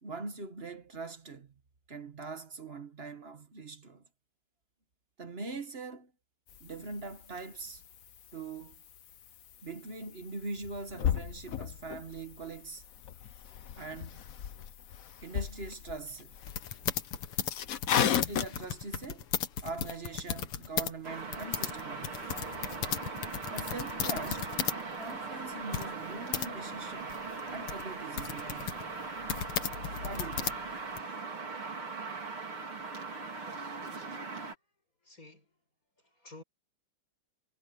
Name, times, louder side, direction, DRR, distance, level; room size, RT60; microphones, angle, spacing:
voice 1, 0.0-1.6 1.9-4.0 5.2-6.1 6.6-7.8 8.3-8.8 9.6-12.8 13.7-14.3 15.2-16.3 18.0-19.3 19.6-22.3 23.5-27.2 27.5-29.0 30.0-30.7, right 3 dB, 30° right, 1.4 m, -42 dB
sound 1, 6.5-18.5, left 9 dB, 55° left, 1.0 m, -37 dB
sound 2, 16.4-20.9 21.2-24.8 25.1-25.2 25.7-26.5 27.1-31.0, left 8 dB, 90° left, 2.4 m, -35 dB
sound 3, 21.0-34.6, right 4 dB, 70° right, 4.7 m, -40 dB
voice 2, 33.5-33.9 35.0-35.5 36.0-36.4, left 2 dB, 35° left, 7.4 m, -53 dB
omnidirectional pair, 2.4 m